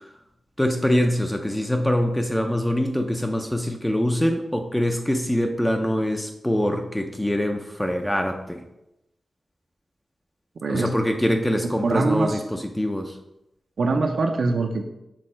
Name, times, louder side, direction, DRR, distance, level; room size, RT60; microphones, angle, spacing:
voice 1, 0.6-8.6 10.7-13.1, equal, 5° left, 4 dB, 0.5 m, -24 dB
voice 2, 10.6-10.9 11.8-12.4 13.8-14.8, right 3 dB, 70° right, 4 dB, 0.6 m, -23 dB
6.3 x 3.7 x 4.4 m, 0.88 s
wide cardioid pair, 120°, 0 cm